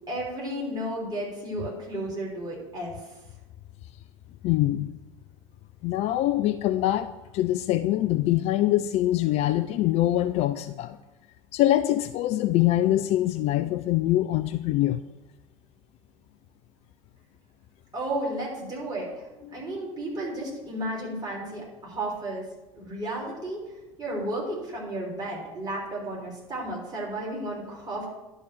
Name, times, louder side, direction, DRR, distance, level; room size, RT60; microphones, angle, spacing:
voice 1, 0.1-2.9 17.9-19.1 19.5-22.4 22.7-23.6 24.0-28.1, right 1 dB, 20° right, -3 dB, 3.7 m, -33 dB
voice 2, 4.4-5.0 5.8-11.0 11.5-15.0 19.5-19.6, left 14 dB, 40° left, 10 dB, 0.4 m, -24 dB
11.0 x 4.0 x 7.3 m, 1.0 s
figure-of-eight pair, 75°, 17 cm